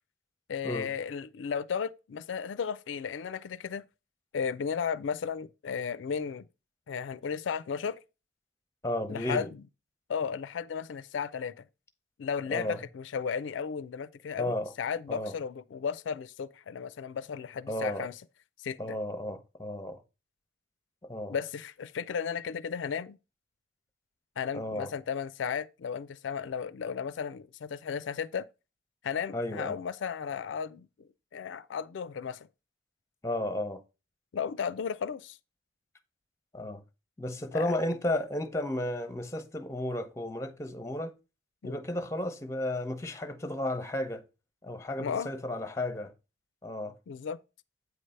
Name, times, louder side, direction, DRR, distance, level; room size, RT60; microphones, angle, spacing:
voice 1, 0.5-3.8 4.3-6.5 6.9-8.0 9.1-9.5 10.1-11.6 12.2-18.2 18.6-19.0 21.3-23.2 24.4-28.5 29.0-30.9 31.3-32.5 34.3-35.4 37.5-37.7 41.6-41.8 45.0-45.3 47.1-47.4, left 6 dB, 90° left, 0.4 m, -34 dB
voice 2, 8.8-9.5 12.5-12.8 14.4-14.7 15.1-15.3 17.7-18.1 18.8-20.0 21.1-21.4 24.5-24.9 29.3-29.8 33.2-33.8 36.5-36.8 37.2-41.1 41.6-44.2 44.6-46.1 46.6-46.9, left 1 dB, 15° left, 0.7 m, -33 dB
8.1 x 3.3 x 5.4 m
head